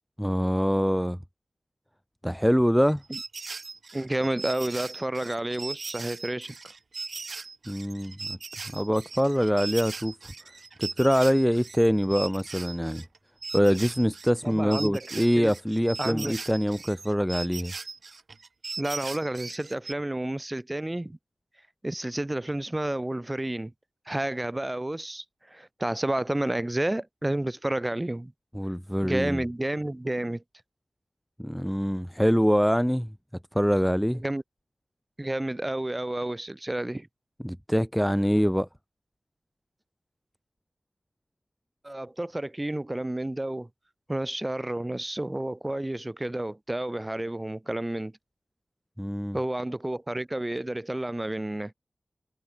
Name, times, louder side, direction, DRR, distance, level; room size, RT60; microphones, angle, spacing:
voice 1, 0.2-1.2 2.2-3.0 7.7-8.4 8.7-10.1 10.8-13.0 13.5-17.7 28.5-29.4 31.4-33.1 33.5-34.2 37.4-38.7 49.0-49.4, equal, ahead, 0.3 m, -24 dB
sound 1, 2.9-13.2 13.4-19.9, right 4 dB, 55° right, 1.2 m, -39 dB
voice 2, 3.9-6.6 14.4-15.5 16.0-16.3 18.8-21.2 21.8-23.7 24.1-28.3 29.0-30.4 34.2-34.4 35.2-37.1 41.8-43.7 44.1-48.1 49.3-51.7, right 1 dB, 15° right, 1.1 m, -30 dB
wide cardioid pair, 110°, 0 cm